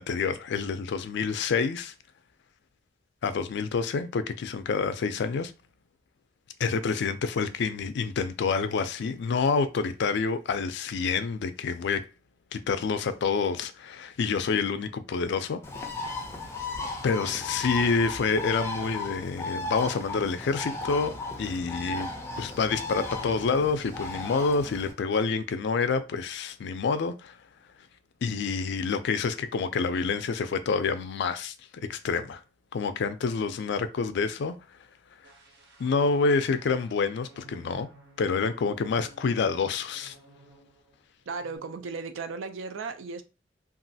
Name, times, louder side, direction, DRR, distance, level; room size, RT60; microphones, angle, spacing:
voice 1, 0.0-1.9 3.2-5.5 6.6-12.1 12.5-15.6 17.0-22.1 22.4-27.3 28.2-31.5 31.9-32.4 32.7-34.6 35.8-37.9 38.2-40.2, left 5 dB, 65° left, 0.4 m, -28 dB
Bird, 15.6-24.9, left 3 dB, 15° left, 0.5 m, -36 dB
sound 1, 35.2-41.0 41.3-41.6, right 1 dB, 60° right, 0.8 m, -54 dB
voice 2, 41.3-43.2, right 4 dB, 90° right, 0.4 m, -35 dB
3.0 x 2.4 x 2.7 m
head